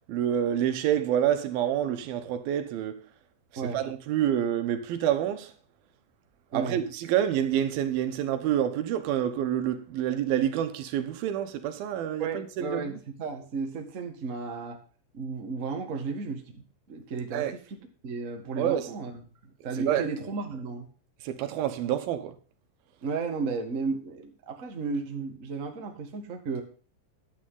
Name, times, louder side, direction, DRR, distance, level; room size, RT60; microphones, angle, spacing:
voice 1, 0.1-3.0 3.7-5.5 6.5-12.8 17.3-17.5 18.6-18.9 19.8-20.1 21.2-22.4, right 10 dB, 85° right, 2.9 m, -27 dB
voice 2, 6.5-6.8 12.2-14.8 15.1-17.8 18.0-19.1 19.6-20.9 23.0-26.6, right 4 dB, 40° right, 1.1 m, -34 dB
10.5 x 9.0 x 3.8 m
omnidirectional pair, 4.2 m